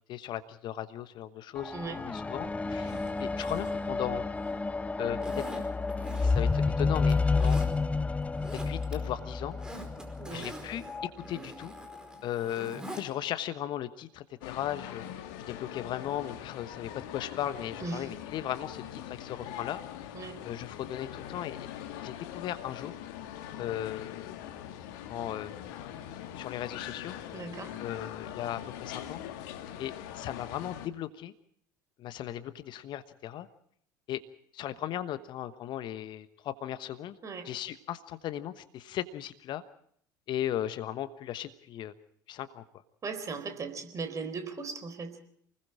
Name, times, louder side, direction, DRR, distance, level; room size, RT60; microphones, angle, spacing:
voice 1, 0.1-4.2 5.0-5.4 6.2-7.6 8.7-9.6 10.3-11.7 12.2-15.1 15.5-19.8 20.4-21.7 22.0-23.0 23.6-24.3 25.1-25.6 26.4-27.2 27.8-31.3 32.0-33.5 34.1-34.2 34.5-37.2 37.4-39.6 40.3-41.9 42.3-42.6, left 11 dB, 45° left, 12 dB, 1.2 m, -37 dB
sound 1, 1.6-11.1 11.9-12.0, left 4 dB, 10° left, 0.8 m, -30 dB
voice 2, 1.7-2.0 10.2-10.5 17.8-18.1 20.1-20.4 27.3-27.8 37.2-37.5 43.0-45.2, right 4 dB, 30° right, 8 dB, 4.2 m, -38 dB
Zipper (clothing), 2.7-4.6 5.2-6.6 7.0-7.7 8.2-8.9 9.3-13.0 13.4-13.5, right 1 dB, 5° right, 4.7 m, -46 dB
sound 2, 14.4-30.9, left 10 dB, 60° left, 1.8 m, -42 dB
29.0 x 20.5 x 4.8 m, 0.64 s
figure-of-eight pair, 70°, 11 cm